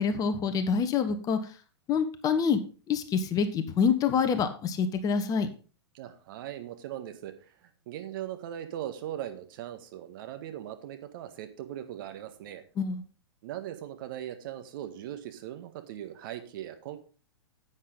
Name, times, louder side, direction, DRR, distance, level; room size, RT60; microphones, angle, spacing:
voice 1, 0.0-1.4 1.9-2.6 2.9-5.5 12.8-13.0, left 6 dB, 25° left, 8 dB, 1.2 m, -26 dB
voice 2, 5.9-12.6 13.4-17.0, right 11 dB, 50° right, 8 dB, 1.6 m, -39 dB
10.0 x 8.6 x 3.9 m, 0.35 s
figure-of-eight pair, 105°, 14 cm